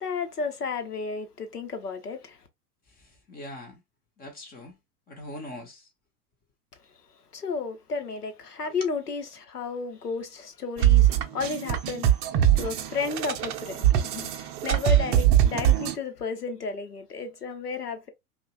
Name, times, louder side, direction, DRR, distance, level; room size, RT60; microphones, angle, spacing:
voice 1, 0.0-2.4 7.3-12.2 12.5-18.1, left 4 dB, 75° left, 1.0 m, -33 dB
voice 2, 3.0-3.8 4.2-4.8 5.1-5.9 8.6-8.9, left 1 dB, 20° left, 0.9 m, -42 dB
sound 1, 10.8-16.0, right 11 dB, 35° right, 0.6 m, -22 dB
5.3 x 2.4 x 2.4 m
figure-of-eight pair, 95°, 47 cm